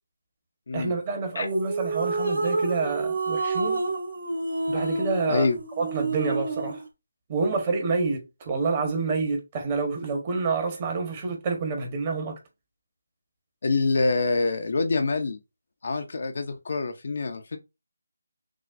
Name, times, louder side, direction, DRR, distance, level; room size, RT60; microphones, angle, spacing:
voice 1, 0.7-3.8 4.7-5.5 5.8-6.8 7.3-12.4, right 4 dB, 25° right, 1.3 m, -28 dB
sound 1, 1.5-6.8, right 3 dB, 70° right, 2.5 m, -29 dB
voice 2, 13.6-15.4 15.8-17.6, left 3 dB, 55° left, 0.8 m, -26 dB
6.1 x 2.4 x 2.6 m
figure-of-eight pair, 160°, 0 cm